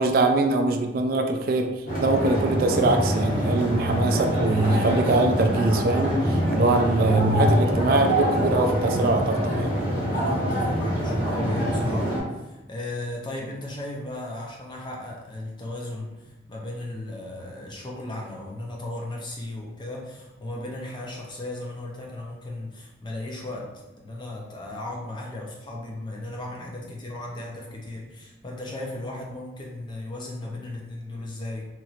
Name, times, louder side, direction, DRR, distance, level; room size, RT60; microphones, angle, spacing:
voice 1, 0.0-9.7, right 2 dB, 50° right, 4 dB, 0.3 m, -23 dB
sound 1, 1.9-12.2, equal, 45° left, 1.0 m, -25 dB
voice 2, 6.6-7.1 10.1-31.7, left 1 dB, 25° left, -1 dB, 0.5 m, -36 dB
3.0 x 2.9 x 2.4 m, 1.1 s
head